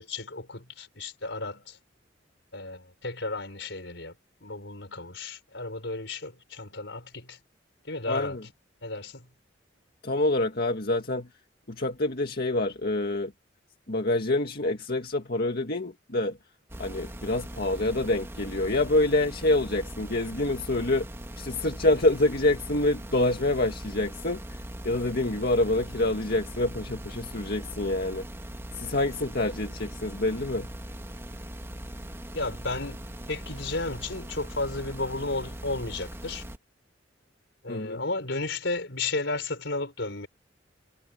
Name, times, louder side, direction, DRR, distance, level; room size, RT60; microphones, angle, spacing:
voice 1, 0.0-1.8 2.5-4.1 4.4-7.4 7.8-8.5 8.8-9.3 25.7-25.8 32.3-36.4 37.6-40.3, left 3 dB, 70° left, 5.0 m, -33 dB
voice 2, 8.1-8.4 10.0-11.3 11.7-13.3 13.9-16.4 16.8-21.1 21.4-24.6 24.9-28.3 28.8-30.7 37.7-38.0, left 2 dB, 55° left, 2.0 m, -26 dB
sound 1, 16.7-36.6, equal, 15° right, 2.0 m, -40 dB
head